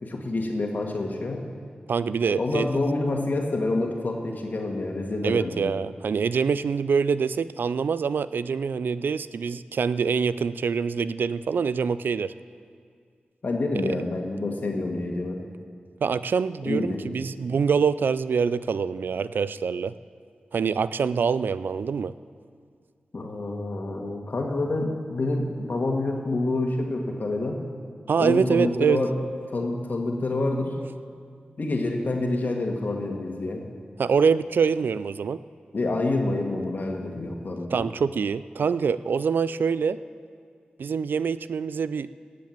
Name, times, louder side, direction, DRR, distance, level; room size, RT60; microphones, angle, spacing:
voice 1, 0.0-1.4 2.4-5.7 13.4-15.4 16.7-17.1 23.1-27.6 28.2-29.1 29.5-30.8 31.6-33.6 35.7-37.8, left 2 dB, 60° left, 1 dB, 2.1 m, -27 dB
voice 2, 1.9-2.7 5.2-12.3 13.7-13.9 16.0-19.9 20.5-22.1 28.1-29.0 34.0-35.4 37.7-40.0 40.8-42.1, right 6 dB, 80° right, 15 dB, 0.4 m, -25 dB
18.0 x 7.5 x 7.4 m, 2.1 s
cardioid pair, 45°, 3 cm